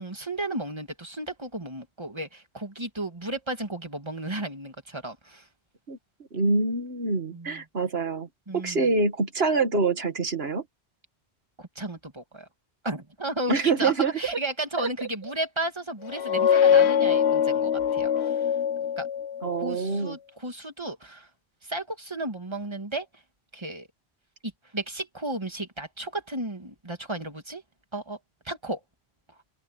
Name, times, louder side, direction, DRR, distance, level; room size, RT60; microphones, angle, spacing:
voice 1, 0.0-5.5 7.3-7.6 8.5-8.9 11.6-12.5 12.8-18.5 19.0-19.1 19.6-21.3 21.6-23.1 23.5-23.9 24.7-27.6 27.9-28.2 28.4-28.8, right 1 dB, 25° right, 2.4 m, -34 dB
voice 2, 6.3-8.3 8.5-10.6 13.5-14.1 14.8-15.1 19.4-20.2, right 4 dB, 70° right, 2.1 m, -25 dB
sound 1, 16.1-19.6, left 8 dB, 85° left, 0.9 m, -23 dB
omnidirectional pair, 1.1 m